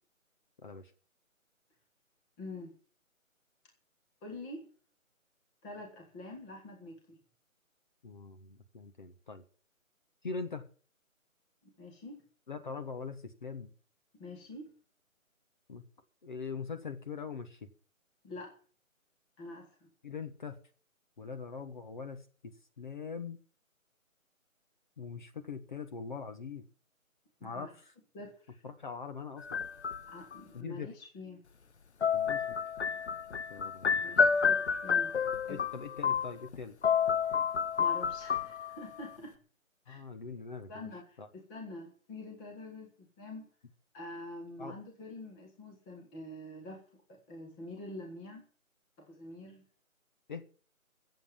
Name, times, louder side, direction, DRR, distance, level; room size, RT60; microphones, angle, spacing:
voice 1, 2.4-2.7 4.2-4.7 5.6-7.2 11.6-12.2 14.2-14.7 18.2-18.5 19.4-19.9 27.4-27.7 28.1-28.6 30.1-31.4 34.0-35.1 35.5-35.6 37.8-39.4 39.8-40.0 40.7-43.5 43.9-46.8 47.1-48.5 49.0-49.6, left 2 dB, 10° left, 1 dB, 1.5 m, -46 dB
voice 2, 8.0-9.4 10.2-10.7 12.5-13.7 15.7-15.8 16.2-17.7 20.0-20.6 21.2-23.4 25.0-26.6 27.4-27.9 28.6-29.6 30.5-30.9 32.1-32.4 33.5-34.0 35.4-36.7 39.9-40.9 41.2-41.3 44.6-44.7 50.3-50.4, left 5 dB, 35° left, 7 dB, 1.5 m, -42 dB
sound 1, 29.4-30.4 32.0-36.6 36.8-39.0, left 6 dB, 55° left, 0.8 m, -30 dB
14.5 x 8.0 x 7.3 m, 0.41 s
figure-of-eight pair, 165°, 41 cm